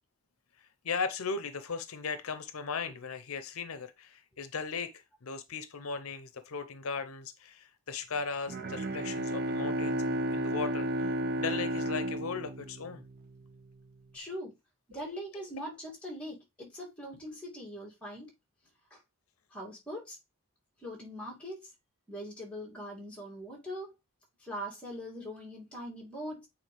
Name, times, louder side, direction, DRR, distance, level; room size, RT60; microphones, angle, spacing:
voice 1, 0.8-10.9 11.4-13.0, left 5 dB, 75° left, 0.7 m, -37 dB
Bowed string instrument, 8.5-13.4, right 1 dB, 45° right, 0.5 m, -33 dB
voice 2, 14.1-14.6 14.9-18.3 18.9-19.0 19.5-20.2 20.8-21.7 22.1-23.9 24.4-26.5, equal, 5° left, 2.5 m, -41 dB
8.9 x 4.1 x 3.4 m
head